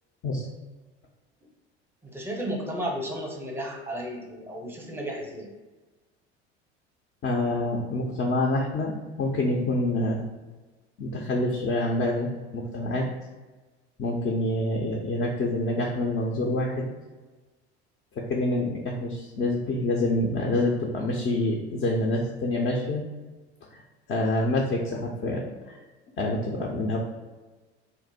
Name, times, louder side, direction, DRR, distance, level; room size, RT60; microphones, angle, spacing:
voice 1, 2.0-5.5, equal, 5° right, 0 dB, 0.7 m, -33 dB
voice 2, 7.2-10.2 11.0-12.3 12.5-13.1 14.0-16.9 18.2-23.0 23.7-23.8 24.1-25.8 26.2-27.0, left 1 dB, 30° left, -1 dB, 0.5 m, -27 dB
2.6 x 2.0 x 4.0 m, 1.2 s
hypercardioid pair, 70°, 34 cm